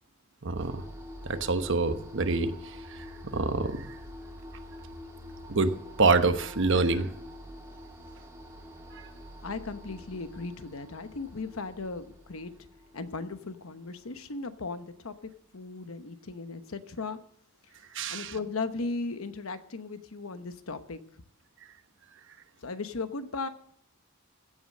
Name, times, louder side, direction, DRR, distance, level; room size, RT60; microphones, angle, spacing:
voice 1, 0.4-0.8 1.3-2.5 3.3-3.9 5.5-7.1 17.9-18.3, right 3 dB, 60° right, 9 dB, 1.0 m, -26 dB
sound 1, 0.6-14.7, left 1 dB, 10° right, 2.8 m, -46 dB
voice 2, 9.4-12.5 12.9-17.2 18.1-21.0 22.6-23.5, left 3 dB, 70° left, 10 dB, 1.0 m, -37 dB
16.0 x 7.4 x 6.6 m, 0.69 s
head